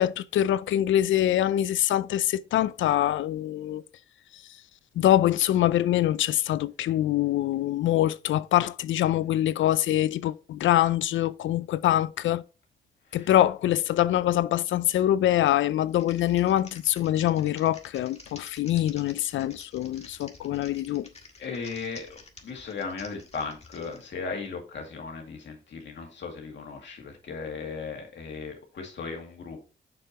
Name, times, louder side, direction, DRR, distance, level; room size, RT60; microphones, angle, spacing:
voice 1, 0.0-3.8 5.0-12.4 13.1-21.1, left 12 dB, 85° left, 0.4 m, -24 dB
Typing, 15.9-24.1, left 3 dB, 35° left, 1.7 m, -50 dB
voice 2, 21.4-22.1 22.4-29.7, left 4 dB, 70° left, 2.2 m, -37 dB
7.0 x 6.6 x 2.9 m
cardioid pair, 70°, 19 cm